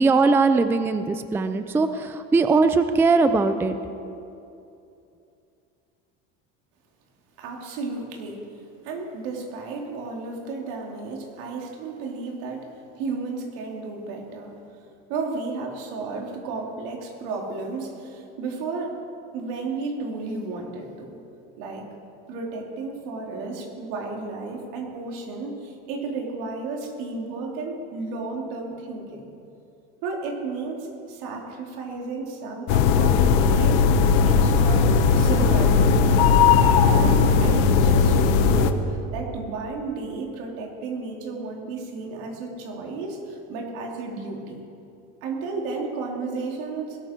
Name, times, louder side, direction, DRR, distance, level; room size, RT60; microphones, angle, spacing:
voice 1, 0.0-3.8, right 4 dB, 5° right, 9 dB, 0.4 m, -20 dB
voice 2, 7.4-8.4 8.8-12.7 13.0-14.5 15.1-18.9 19.3-21.2 21.6-21.9 22.3-29.3 30.0-36.4 37.0-38.7 39.1-44.6 45.2-47.0, right 3 dB, 80° right, 0 dB, 3.1 m, -33 dB
sound 1, 32.7-38.7, left 5 dB, 70° left, 1.0 m, -18 dB
20.5 x 13.0 x 4.5 m, 2.7 s
cardioid pair, 150°, 32 cm